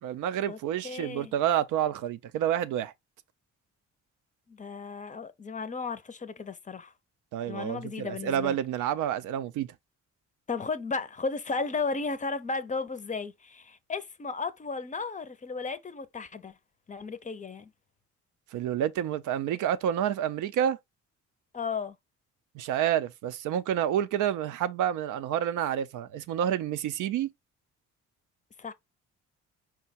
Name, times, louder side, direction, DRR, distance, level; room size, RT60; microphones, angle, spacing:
voice 1, 0.0-2.9 7.3-9.7 18.5-20.8 22.5-27.3, right 10 dB, 80° right, 0.5 m, -29 dB
voice 2, 0.8-1.3 4.5-6.9 7.5-8.6 10.5-16.5 16.9-17.7 21.5-22.0 28.6-28.7, left 4 dB, 25° left, 0.5 m, -34 dB
4.6 x 2.2 x 4.0 m
cardioid pair, 90°, 30 cm